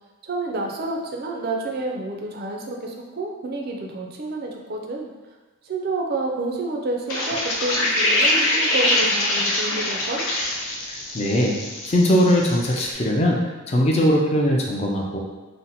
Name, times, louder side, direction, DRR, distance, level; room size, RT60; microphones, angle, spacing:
voice 1, 0.2-5.1 5.6-10.3, right 2 dB, 45° right, 0 dB, 0.4 m, -29 dB
sound 1, 7.1-12.9, left 1 dB, 75° left, 0.6 m, -24 dB
voice 2, 10.9-11.6 11.8-15.2, equal, 30° left, -1 dB, 0.4 m, -20 dB
2.7 x 2.1 x 3.9 m, 1.2 s
head